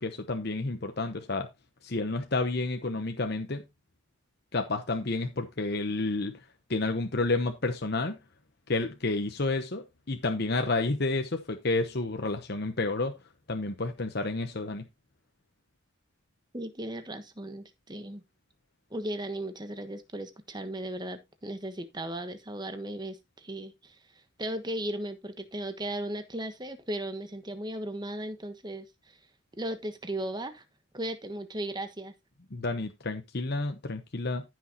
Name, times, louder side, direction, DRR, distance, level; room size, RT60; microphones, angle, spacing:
voice 1, 0.0-1.5 1.8-3.6 4.5-6.3 6.7-8.2 8.7-13.2 13.5-14.8 32.5-34.4, left 2 dB, 50° left, 0.9 m, -30 dB
voice 2, 16.5-18.2 18.9-24.0 24.4-29.2 29.6-30.6 30.9-32.1, right 1 dB, 20° right, 1.2 m, -36 dB
14.0 x 6.2 x 2.9 m
head